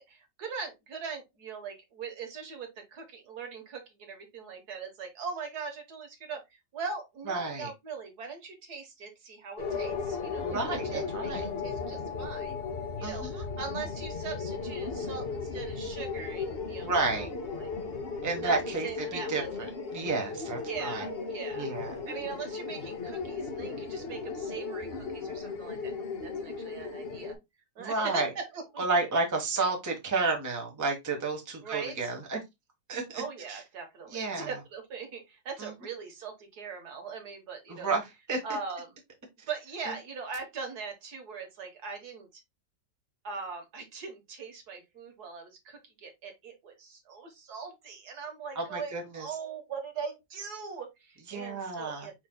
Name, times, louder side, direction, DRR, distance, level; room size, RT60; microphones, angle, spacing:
voice 1, 0.1-6.4 6.7-12.6 13.0-16.9 17.1-17.7 18.4-18.6 18.8-19.5 20.6-21.7 22.1-27.3 27.7-28.8 31.6-32.1 33.1-37.9 38.4-38.9 39.5-42.4 43.2-52.1, right 5 dB, 65° right, 1.7 m, -40 dB
voice 2, 7.3-7.7 10.4-11.4 13.0-13.4 16.8-17.3 18.2-21.0 21.6-21.9 27.8-28.3 28.8-32.4 32.9-33.2 33.5-33.6 34.1-34.5 35.6-35.7 37.7-38.6 39.8-39.9 48.5-49.3 51.3-52.1, right 3 dB, 10° right, 1.0 m, -31 dB
sound 1, 9.6-27.4, left 4 dB, 45° left, 0.9 m, -36 dB
5.1 x 4.5 x 2.2 m
omnidirectional pair, 1.9 m